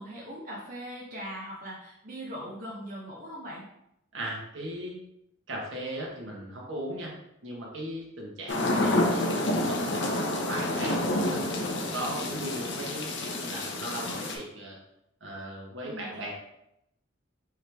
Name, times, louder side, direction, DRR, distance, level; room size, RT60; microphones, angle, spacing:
voice 1, 0.0-3.7 15.8-16.3, equal, 45° right, -4 dB, 0.7 m, -40 dB
voice 2, 4.1-5.0 5.5-7.1 7.4-11.0 11.3-14.8 15.2-16.3, right 1 dB, 75° right, -2 dB, 1.3 m, -38 dB
sound 1, 8.5-14.4, left 1 dB, 65° left, 0.7 m, -28 dB
4.6 x 3.2 x 3.4 m, 0.82 s
head